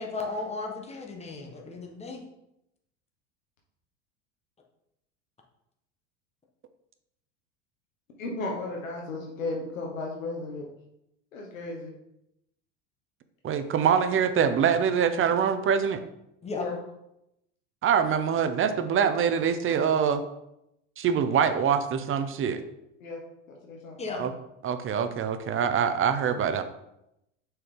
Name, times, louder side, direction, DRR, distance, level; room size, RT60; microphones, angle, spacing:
voice 1, 0.0-2.2 16.4-16.6 24.0-24.2, left 3 dB, 15° left, 1 dB, 1.4 m, -35 dB
voice 2, 8.2-10.7 11.3-11.9 16.5-16.8 23.0-23.2 23.5-24.2, left 3 dB, 90° left, -1 dB, 1.2 m, -35 dB
voice 3, 13.4-16.0 17.8-20.2 21.0-22.6 24.1-24.3 24.6-26.6, right 7 dB, 35° right, 10 dB, 0.7 m, -24 dB
6.3 x 4.6 x 3.8 m, 0.84 s
hypercardioid pair, 85°, 39 cm